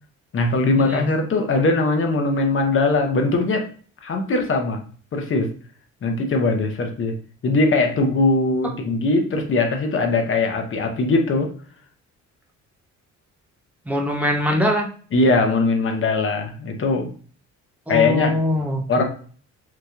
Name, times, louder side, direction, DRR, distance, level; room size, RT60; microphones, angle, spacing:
voice 1, 0.3-3.7 4.0-4.8 5.1-5.5 6.0-11.5 15.1-17.1 17.9-18.3 18.9-19.0, left 3 dB, 45° left, 3 dB, 0.8 m, -20 dB
voice 2, 13.9-14.9 17.9-19.0, left 1 dB, 5° right, 1 dB, 0.7 m, -22 dB
2.9 x 2.7 x 2.4 m, 0.43 s
cardioid pair, 90°, 30 cm